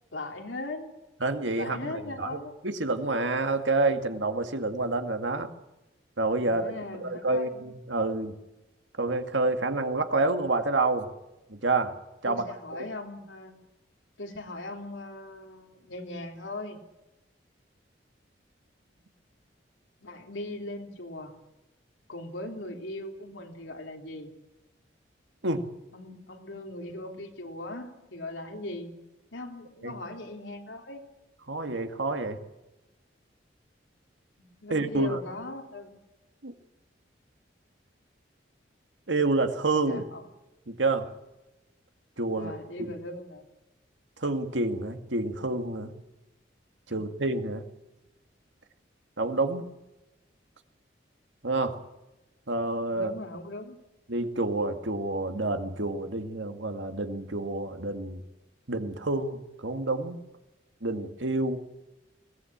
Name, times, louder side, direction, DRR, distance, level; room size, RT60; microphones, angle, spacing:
voice 1, 0.1-0.9 1.6-2.5 6.4-7.6 12.2-13.6 14.2-16.8 20.0-21.3 22.1-24.3 25.9-28.9 29.3-31.0 34.4-36.0 39.8-40.2 42.3-43.4 52.9-53.8, left 2 dB, 85° left, 3 dB, 3.3 m, -39 dB
voice 2, 1.2-5.5 6.2-6.7 7.0-8.4 9.0-11.1 11.5-11.9 12.2-12.4 12.7-12.9 25.4-25.6 29.8-29.9 31.5-32.4 34.7-35.2 36.4-36.5 39.1-40.0 40.7-41.1 42.2-42.5 42.8-42.9 44.2-45.9 46.9-47.6 49.2-49.7 51.4-51.7 52.5-53.1 54.1-58.2 58.7-60.2 60.8-61.6, right 2 dB, 80° right, 7 dB, 2.0 m, -28 dB
22.0 x 18.0 x 8.7 m, 1.0 s
head